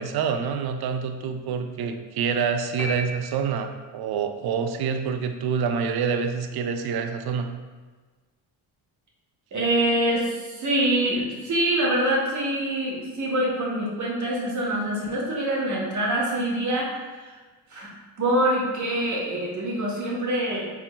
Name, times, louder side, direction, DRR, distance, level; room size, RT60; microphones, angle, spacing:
voice 1, 0.0-7.5, right 6 dB, 50° right, 6 dB, 0.5 m, -27 dB
sound 1, 2.8-4.0, left 1 dB, 5° left, 1.1 m, -36 dB
voice 2, 9.5-17.4 17.7-20.7, right 1 dB, 35° right, -4 dB, 1.3 m, -25 dB
4.5 x 3.6 x 2.4 m, 1.3 s
supercardioid pair, 70°, 48 cm